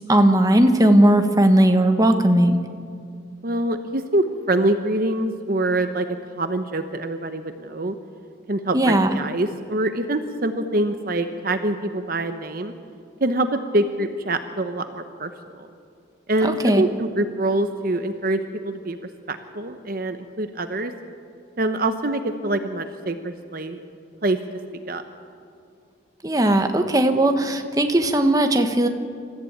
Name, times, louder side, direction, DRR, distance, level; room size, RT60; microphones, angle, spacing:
voice 1, 0.1-2.6 8.7-9.1 16.4-16.8 26.2-28.9, right 1 dB, 20° right, 6 dB, 1.3 m, -17 dB
voice 2, 3.4-6.1 6.4-8.0 8.5-12.7 13.2-13.5 13.7-15.3 15.6-15.7 16.3-18.4 18.6-19.0 19.3-20.9 21.6-23.8 24.2-24.4 24.9-25.0, right 1 dB, 50° right, 8 dB, 1.0 m, -25 dB
26.5 x 14.5 x 8.9 m, 2.4 s
head